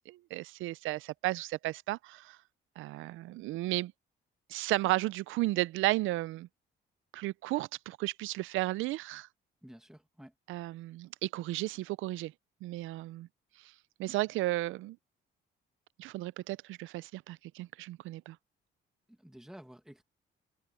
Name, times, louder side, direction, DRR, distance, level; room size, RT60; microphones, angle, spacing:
voice 1, 0.1-2.4 2.8-3.9 4.5-6.5 7.1-9.3 10.5-12.3 12.6-13.3 14.0-15.0 16.0-18.4, right 18 dB, 90° right, 0.5 m, -34 dB
voice 2, 9.6-10.3 19.1-20.0, equal, 5° right, 2.1 m, -52 dB
open air
cardioid pair, 90°, 20 cm